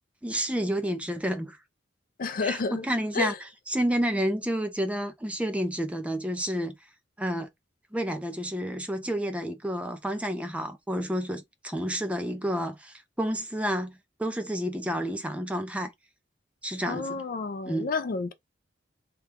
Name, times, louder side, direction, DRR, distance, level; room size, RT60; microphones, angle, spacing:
voice 1, 0.2-1.6 2.4-3.3 3.7-6.8 7.2-7.5 7.9-15.9 16.6-17.2 17.7-17.9, equal, 5° right, 0.5 m, -30 dB
voice 2, 2.2-2.9 3.1-3.4 16.8-18.3, left 4 dB, 50° left, 0.4 m, -30 dB
2.9 x 2.3 x 3.5 m
head